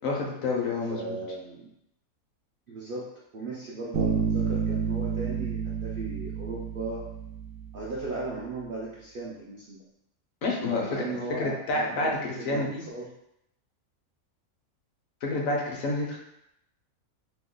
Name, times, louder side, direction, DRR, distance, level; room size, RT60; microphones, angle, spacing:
voice 1, 0.0-1.2 10.4-11.0 11.4-12.8 15.2-16.2, left 2 dB, 70° left, -1 dB, 1.0 m, -29 dB
voice 2, 0.9-1.7 2.7-7.0 7.7-9.8 10.6-13.1, right 2 dB, 65° right, -6 dB, 0.5 m, -37 dB
Bass guitar, 3.9-7.6, right 6 dB, 85° right, 1.0 m, -29 dB
2.9 x 2.2 x 3.7 m, 0.80 s
omnidirectional pair, 1.5 m